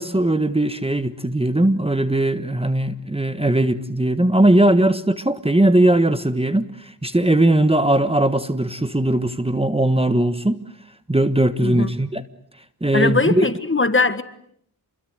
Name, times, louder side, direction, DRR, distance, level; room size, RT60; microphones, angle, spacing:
voice 1, 0.0-10.6 11.1-12.2 12.8-13.5, right 1 dB, 15° right, 11 dB, 1.4 m, -19 dB
voice 2, 12.9-14.2, left 3 dB, 30° left, 11 dB, 1.8 m, -20 dB
28.5 x 22.5 x 8.0 m, 0.70 s
wide cardioid pair, 65°, 39 cm